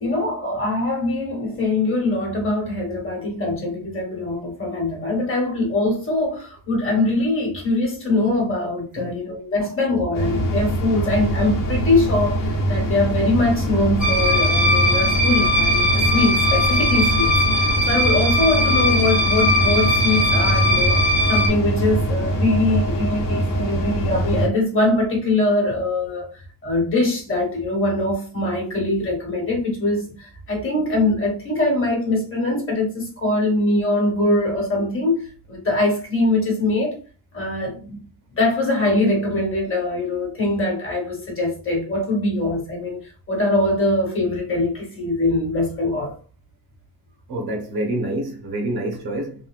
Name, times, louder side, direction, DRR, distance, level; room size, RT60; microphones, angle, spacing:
voice 1, 0.0-26.3 26.6-37.0 37.3-38.0 38.4-46.1, left 2 dB, 30° left, 1.1 m, -22 dB
sound 1, 10.1-24.5, right 1 dB, 50° left, 0.9 m, -23 dB
sound 2, 14.0-21.5, left 1 dB, 5° right, 0.7 m, -20 dB
voice 2, 47.3-49.5, right 1 dB, 60° right, 0.9 m, -27 dB
3.2 x 2.6 x 2.4 m
cardioid pair, 165°, 43 cm